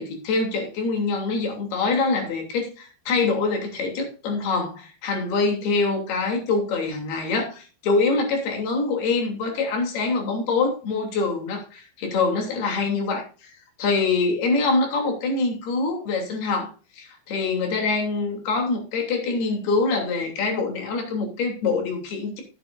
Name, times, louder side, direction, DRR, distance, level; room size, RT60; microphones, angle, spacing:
voice 1, 0.0-13.5 13.8-22.4, left 3 dB, 60° left, 2 dB, 4.9 m, -25 dB
14.5 x 10.5 x 2.6 m, 0.35 s
omnidirectional pair, 5.2 m